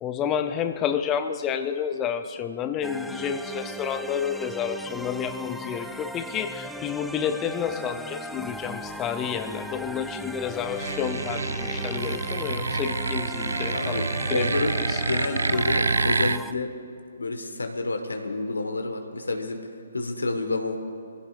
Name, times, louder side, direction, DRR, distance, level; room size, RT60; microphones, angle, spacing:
voice 1, 0.0-14.0 14.3-15.0, left 8 dB, 20° left, 9 dB, 0.7 m, -30 dB
sound 1, 2.8-16.5, equal, ahead, 0.3 m, -37 dB
sound 2, 10.7-16.4, right 3 dB, 75° right, 0.3 m, -27 dB
voice 2, 13.7-16.7 17.2-19.6 19.9-20.8, left 2 dB, 75° left, 5 dB, 1.4 m, -29 dB
25.0 x 16.0 x 2.5 m, 2.5 s
figure-of-eight pair, 135°, 0 cm